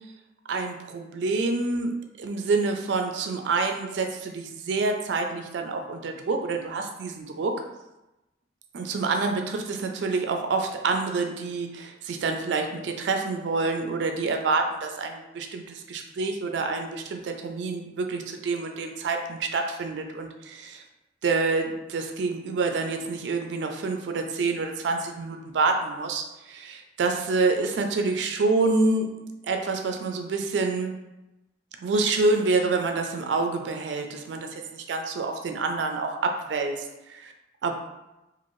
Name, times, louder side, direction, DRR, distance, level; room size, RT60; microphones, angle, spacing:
voice 1, 0.5-7.6 8.7-20.8 21.2-29.1 29.4-30.9 31.8-37.3 37.6-37.7, right 3 dB, 70° right, 4 dB, 0.4 m, -27 dB
2.6 x 2.5 x 3.0 m, 0.97 s
head